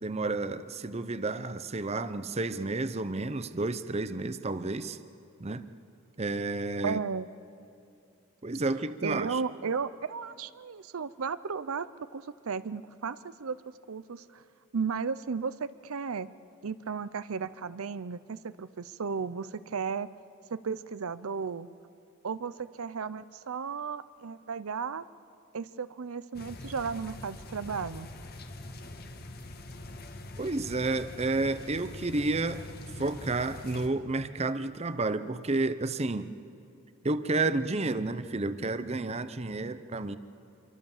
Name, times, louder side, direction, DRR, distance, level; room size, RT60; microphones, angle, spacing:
voice 1, 0.0-5.0 5.4-5.7 6.2-7.0 8.4-9.4 30.4-32.7 33.0-36.3 37.0-40.2, right 2 dB, 30° right, 12 dB, 0.7 m, -31 dB
voice 2, 6.8-7.3 9.0-11.9 12.1-13.6 13.9-14.4 14.7-16.3 16.6-20.1 20.5-21.7 22.2-25.0 25.5-28.1, right 5 dB, 85° right, 15 dB, 0.6 m, -34 dB
sound 1, 26.3-33.9, left 2 dB, 45° left, 1.6 m, -43 dB
27.0 x 23.5 x 7.3 m, 2.5 s
head